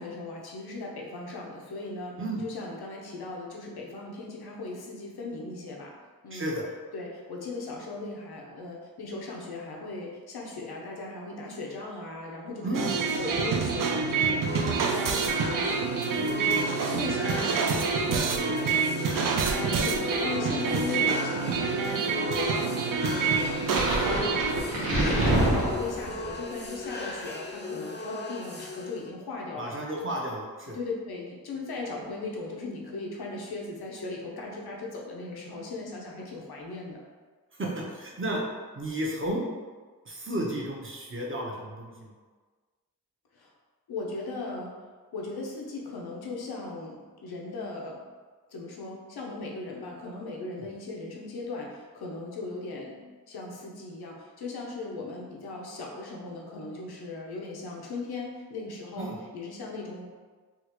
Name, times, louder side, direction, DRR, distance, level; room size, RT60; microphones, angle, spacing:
voice 1, 0.0-5.9 6.2-6.6 6.9-12.8 13.2-18.3 18.6-19.1 19.5-29.7 30.7-37.0 43.3-43.5 43.9-44.7 45.1-48.0 48.5-60.0, left 3 dB, 85° left, -2 dB, 0.7 m, -38 dB
voice 2, 6.3-6.7 12.6-12.9 16.5-16.6 23.4-23.5 29.6-30.8 37.6-38.4 38.7-39.4 40.1-42.1 59.0-59.1, right 1 dB, 35° right, -3 dB, 0.9 m, -32 dB
sound 1, 12.7-24.6, right 5 dB, 60° right, 0.5 m, -27 dB
sound 2, 14.5-29.1, left 2 dB, 30° left, 0.5 m, -38 dB
sound 3, 23.5-26.3, right 1 dB, 85° right, 1.0 m, -26 dB
3.6 x 2.4 x 3.0 m, 1.4 s
cardioid pair, 50°, 37 cm